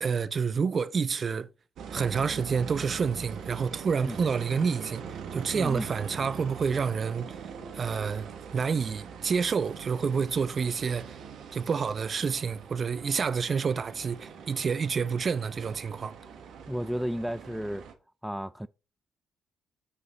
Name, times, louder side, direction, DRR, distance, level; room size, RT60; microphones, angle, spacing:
voice 1, 0.0-1.5 1.9-7.4 7.7-8.3 8.5-11.2 11.5-16.1, right 6 dB, 45° right, 0.6 m, -28 dB
sound 1, 1.8-17.9, right 6 dB, 75° right, 1.3 m, -42 dB
voice 2, 5.5-5.9 16.7-17.9 18.2-18.7, equal, 5° right, 0.3 m, -32 dB
6.5 x 5.4 x 4.0 m
cardioid pair, 90°, 0 cm